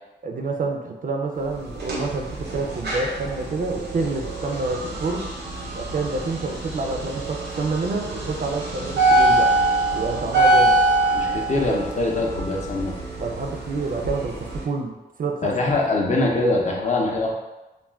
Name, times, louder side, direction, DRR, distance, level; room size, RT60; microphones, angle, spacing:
voice 1, 0.2-5.3 5.7-9.6 9.9-10.8 13.2-15.5, right 3 dB, 55° right, 2 dB, 0.4 m, -28 dB
sound 1, 1.5-14.6, right 2 dB, 85° right, 0.7 m, -24 dB
voice 2, 11.1-13.0 15.4-17.3, left 2 dB, 45° left, -1 dB, 0.5 m, -23 dB
2.3 x 2.2 x 3.2 m, 1.0 s
cardioid pair, 75°, 18 cm